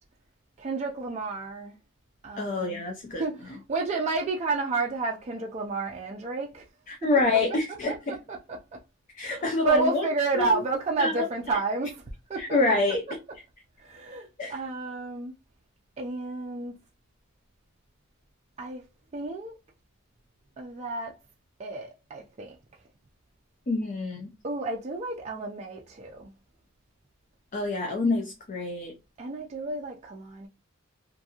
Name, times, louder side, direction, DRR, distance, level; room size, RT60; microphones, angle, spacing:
voice 1, 0.6-1.7 2.2-2.8 3.2-6.6 7.0-7.1 7.9-8.0 8.3-8.8 9.2-12.0 12.3-12.4 13.8-15.3 16.0-16.7 18.6-18.8 19.1-19.5 20.6-21.2 21.6-22.6 24.4-26.3 29.2-30.5, right 3 dB, 30° right, 0.4 m, -31 dB
voice 2, 2.4-3.2 6.9-8.2 9.1-10.1 10.3-10.6 11.0-11.3 12.4-13.0 14.4-14.6 23.7-24.3 27.5-28.9, left 2 dB, 40° left, 0.5 m, -27 dB
2.8 x 2.6 x 2.3 m
head